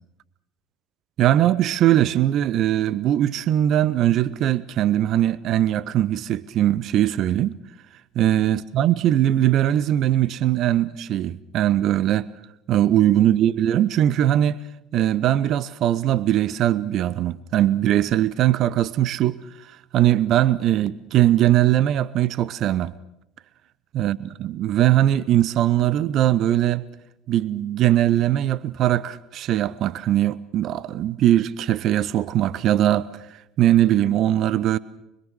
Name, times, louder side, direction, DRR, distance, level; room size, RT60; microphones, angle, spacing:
voice 1, 1.2-7.5 8.2-12.3 12.7-14.6 14.9-19.4 19.9-22.9 23.9-26.8 27.3-33.1 33.6-34.8, right 12 dB, 45° right, 0.8 m, -20 dB
25.0 x 22.5 x 6.4 m
figure-of-eight pair, 60°, 0 cm